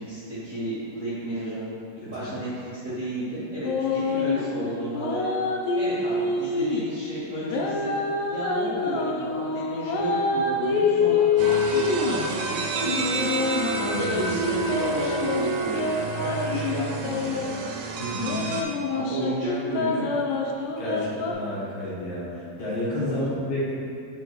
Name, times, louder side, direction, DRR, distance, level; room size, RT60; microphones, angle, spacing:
voice 1, 0.0-1.6 2.1-5.3 5.7-7.9 8.3-13.4 14.1-17.5 18.9-20.1 23.0-23.3, right 1 dB, 60° right, -14 dB, 0.8 m, -32 dB
voice 2, 2.0-2.3 13.9-14.2 18.0-18.4 20.8-23.7, left 1 dB, 50° left, -9 dB, 2.3 m, -30 dB
sound 1, 3.6-4.5 4.9-6.9 7.4-12.3 12.8-17.6 18.1-21.3, left 4 dB, 80° left, 1.9 m, -26 dB
sound 2, 11.4-18.6, right 4 dB, 85° right, 1.7 m, -30 dB
7.0 x 5.1 x 3.1 m, 2.6 s
omnidirectional pair, 4.1 m